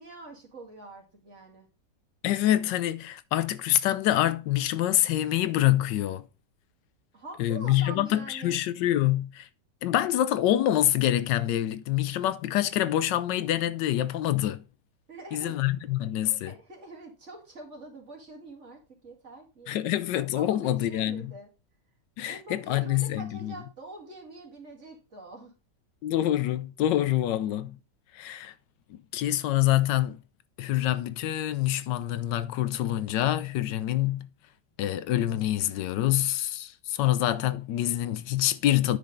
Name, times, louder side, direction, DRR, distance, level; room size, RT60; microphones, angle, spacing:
voice 1, 0.0-1.7 7.1-8.6 15.1-15.5 16.2-19.8 20.4-21.5 22.2-25.5, right 2 dB, 40° right, 2.4 m, -45 dB
voice 2, 2.2-6.3 7.4-9.5 9.8-14.6 15.3-16.5 19.7-21.3 22.2-23.5 26.0-27.8 28.1-28.5 28.9-30.2 30.6-34.3 34.8-39.0, left 13 dB, 85° left, 1.3 m, -26 dB
9.5 x 5.3 x 3.8 m
omnidirectional pair, 1.9 m